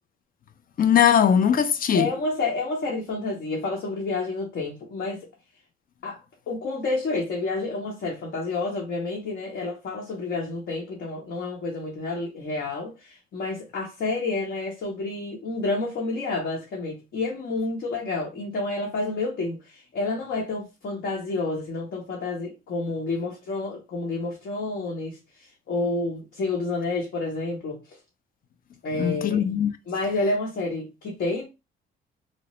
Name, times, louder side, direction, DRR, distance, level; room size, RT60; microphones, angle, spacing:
voice 1, 0.8-2.1 29.0-29.7, left 8 dB, 45° left, 0.4 m, -20 dB
voice 2, 1.9-5.3 6.0-6.2 6.5-25.2 25.7-28.0 28.8-29.4 29.9-31.4, left 3 dB, 65° left, 0.9 m, -29 dB
2.9 x 2.0 x 3.0 m
cardioid pair, 90°, 20 cm